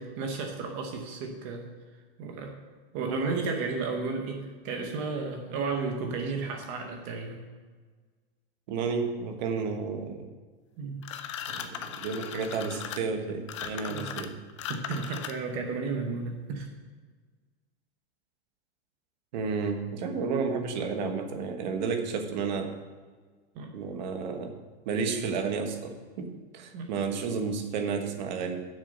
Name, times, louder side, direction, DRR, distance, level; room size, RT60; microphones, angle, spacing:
voice 1, 0.0-1.7 2.2-2.5 2.9-7.4 10.8-11.0 13.9-14.1 14.7-16.7 23.5-23.7 26.7-26.9, right 4 dB, 25° right, 3 dB, 0.8 m, -33 dB
voice 2, 8.7-10.3 11.5-14.3 19.3-22.7 23.7-24.6 24.8-28.6, right 5 dB, 45° right, 5 dB, 1.3 m, -32 dB
sound 1, 11.0-15.6, left 9 dB, 30° left, 0.4 m, -38 dB
7.9 x 6.4 x 7.7 m, 1.4 s
supercardioid pair, 180°, 32 cm